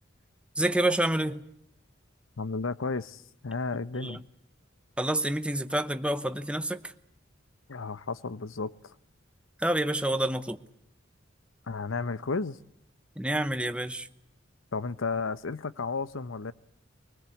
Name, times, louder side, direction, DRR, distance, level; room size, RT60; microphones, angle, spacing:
voice 1, 0.6-1.4 4.0-4.2 5.0-6.9 9.6-10.6 13.2-14.1, right 1 dB, 5° right, 0.9 m, -28 dB
voice 2, 2.4-4.2 7.7-8.9 11.7-12.6 14.7-16.5, left 4 dB, 90° left, 0.9 m, -33 dB
24.0 x 20.0 x 8.5 m
head